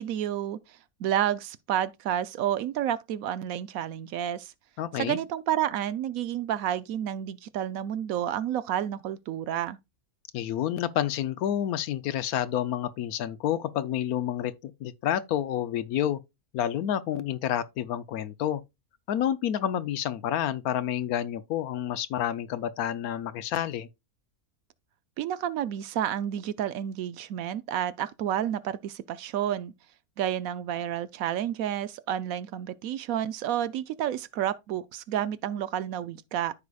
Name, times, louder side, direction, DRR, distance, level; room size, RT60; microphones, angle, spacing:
voice 1, 0.0-4.5 4.9-9.8 25.2-29.7 30.2-36.5, right 10 dB, 70° right, 0.9 m, -30 dB
voice 2, 4.8-5.2 10.3-16.2 16.5-18.6 19.1-23.9, left 10 dB, 75° left, 1.1 m, -29 dB
13.5 x 4.8 x 2.3 m
omnidirectional pair, 1.6 m